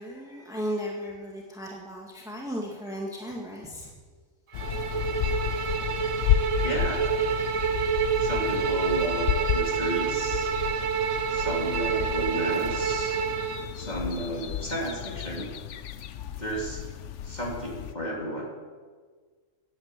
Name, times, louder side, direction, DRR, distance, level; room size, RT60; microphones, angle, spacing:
voice 1, 0.0-3.9, equal, 5° right, -1 dB, 1.8 m, -35 dB
sound 1, 4.5-17.9, left 11 dB, 70° left, 1.0 m, -32 dB
Bowed string instrument, 4.5-13.7, right 6 dB, 75° right, 1.4 m, -28 dB
voice 2, 6.6-7.0 8.2-10.5 11.3-13.2 13.7-15.5 16.4-16.8 17.2-18.5, equal, 35° left, -2 dB, 3.5 m, -33 dB
14.0 x 9.8 x 8.3 m, 1.5 s
omnidirectional pair, 1.3 m